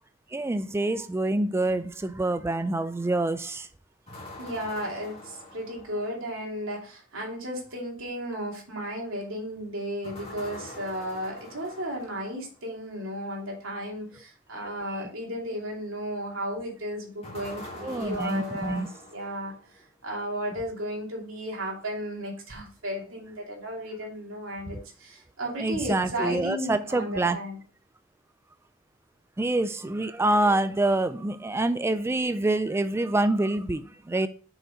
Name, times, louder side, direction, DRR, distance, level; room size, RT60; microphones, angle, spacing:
voice 1, 0.3-3.7 14.9-15.0 17.8-18.9 25.6-27.4 29.4-34.3, right 2 dB, 10° right, 0.3 m, -26 dB
sound 1, 4.1-6.4 10.0-12.6 17.2-19.8, left 1 dB, 30° left, 2.1 m, -44 dB
voice 2, 4.4-18.9 19.1-19.5 20.0-27.6, equal, 85° right, 2.6 m, -34 dB
6.3 x 5.1 x 4.9 m
head